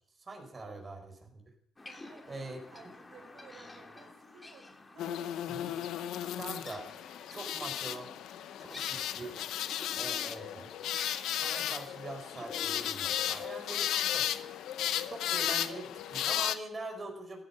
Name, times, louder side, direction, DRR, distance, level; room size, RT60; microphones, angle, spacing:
voice 1, 0.2-1.0 1.3-1.4 2.3-2.6 5.5-5.7 6.4-6.9 7.3-8.1 8.6-9.4 10.0-10.7 11.3-14.3 15.1-17.4, right 2 dB, 30° right, 2 dB, 5.0 m, -43 dB
sound 1, 1.8-15.6, left 2 dB, 20° left, 2.5 m, -51 dB
voice 2, 1.9-2.4 2.7-5.2, right 4 dB, 70° right, 2 dB, 4.6 m, -55 dB
sound 2, 5.0-16.6, left 11 dB, 85° left, 0.8 m, -34 dB
15.0 x 13.0 x 5.8 m, 0.65 s
cardioid pair, 90°, 0 cm